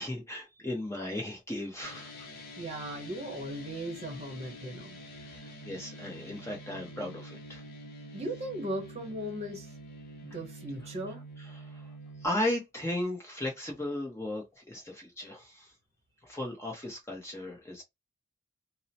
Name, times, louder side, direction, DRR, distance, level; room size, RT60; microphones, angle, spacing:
voice 1, 0.0-2.3 5.2-7.6 11.5-11.8 12.2-15.7 16.3-17.8, left 1 dB, 15° left, 0.7 m, -36 dB
sound 1, 1.8-12.3, equal, 50° left, 0.7 m, -47 dB
voice 2, 2.6-5.0 8.1-9.7 10.2-11.2, right 1 dB, 30° right, 0.9 m, -37 dB
2.8 x 2.0 x 2.7 m
head